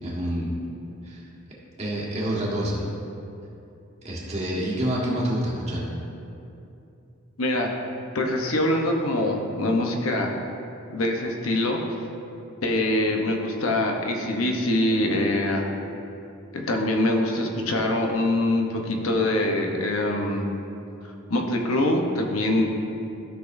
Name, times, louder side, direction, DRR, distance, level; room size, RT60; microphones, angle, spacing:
voice 1, 0.0-0.6 1.0-1.2 1.8-2.9 4.0-5.8, right 1 dB, 30° right, -5 dB, 1.5 m, -27 dB
voice 2, 7.4-7.7 8.1-10.4 10.9-11.8 12.6-15.6 16.5-20.5 21.3-22.7, left 1 dB, 75° left, 1 dB, 0.9 m, -24 dB
13.5 x 5.9 x 2.6 m, 2.7 s
head